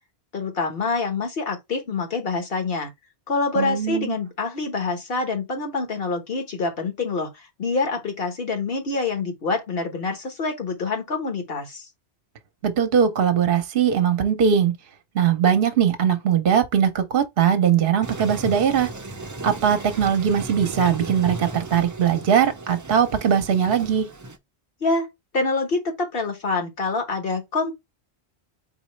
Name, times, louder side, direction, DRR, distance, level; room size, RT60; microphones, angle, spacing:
voice 1, 0.3-2.9 3.3-11.8 24.8-25.1 25.3-27.7, left 3 dB, 60° left, 1.4 m, -26 dB
voice 2, 3.6-4.2 12.6-14.8 15.1-18.9 19.4-24.1, right 8 dB, 60° right, 0.9 m, -20 dB
Toilet flush, 18.0-24.4, right 2 dB, 30° right, 0.3 m, -35 dB
4.2 x 4.0 x 3.1 m
omnidirectional pair, 1.1 m